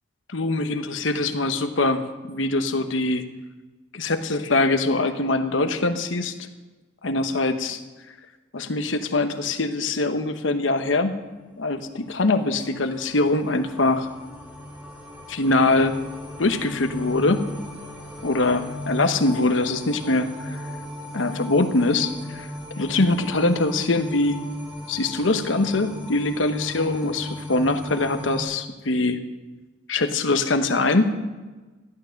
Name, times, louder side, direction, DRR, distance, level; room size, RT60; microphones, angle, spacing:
voice 1, 0.3-3.2 3.9-6.3 7.0-7.8 8.5-11.1 11.6-14.1 15.3-16.0 16.4-17.4 18.2-20.7 21.1-22.5 22.8-24.4 24.9-29.2 29.9-31.1, left 2 dB, 80° left, 8 dB, 1.0 m, -23 dB
sound 1, 12.2-28.4, left 1 dB, 10° right, 2.2 m, -37 dB
13.5 x 12.0 x 6.5 m, 1.2 s
head